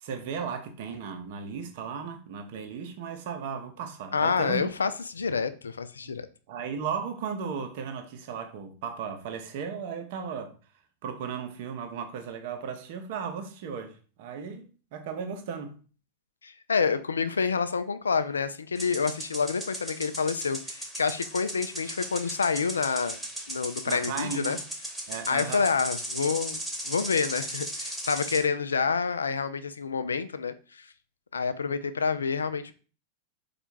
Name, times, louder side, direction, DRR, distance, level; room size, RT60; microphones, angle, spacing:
voice 1, 0.0-4.9 6.0-6.1 6.5-10.5 11.0-15.8 23.9-24.6 25.1-25.7, right 6 dB, 50° right, 0.8 m, -36 dB
voice 2, 4.1-6.2 16.4-23.2 23.5-24.6 25.3-26.6 26.8-30.9 31.3-32.7, left 5 dB, 70° left, 0.3 m, -28 dB
sound 1, 18.7-28.4, right 1 dB, 5° right, 1.1 m, -37 dB
4.3 x 2.4 x 4.5 m
figure-of-eight pair, 90°, 0 cm